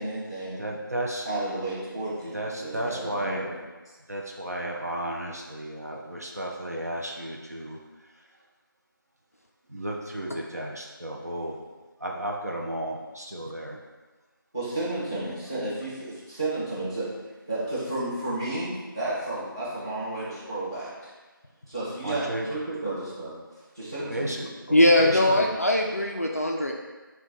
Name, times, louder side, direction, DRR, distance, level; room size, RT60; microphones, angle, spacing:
voice 1, 0.0-0.6 1.2-3.6 14.5-17.1 17.5-21.1 21.7-23.3 23.7-24.5, right 2 dB, 10° right, -13 dB, 0.8 m, -32 dB
voice 2, 0.6-1.3 2.3-3.5 4.1-7.8 9.7-11.6 12.0-13.8 22.0-22.5 24.1-24.5 25.0-25.5, right 1 dB, 45° right, -1 dB, 0.5 m, -33 dB
voice 3, 24.7-26.7, left 1 dB, 40° left, 1 dB, 0.3 m, -21 dB
4.4 x 2.2 x 3.8 m, 1.3 s
figure-of-eight pair, 170°, 12 cm